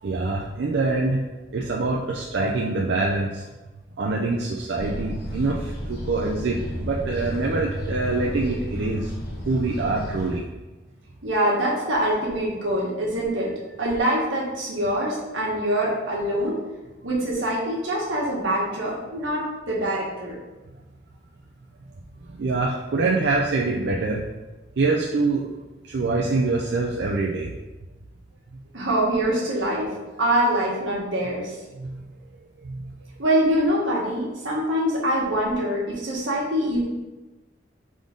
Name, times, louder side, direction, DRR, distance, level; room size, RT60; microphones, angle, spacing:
voice 1, 0.0-1.2 1.5-3.4 4.0-9.1 9.5-10.4 22.3-24.2 24.8-25.5 25.9-27.5 31.8-32.0 32.6-32.9, right 3 dB, 65° right, -2 dB, 0.4 m, -25 dB
sound 1, 4.7-10.4, equal, 55° left, 0.9 m, -32 dB
voice 2, 11.2-13.5 13.8-16.6 17.0-20.3 28.7-29.9 30.2-31.6 33.2-36.8, right 1 dB, 85° right, -5 dB, 1.5 m, -24 dB
3.8 x 3.7 x 3.7 m, 1.1 s
head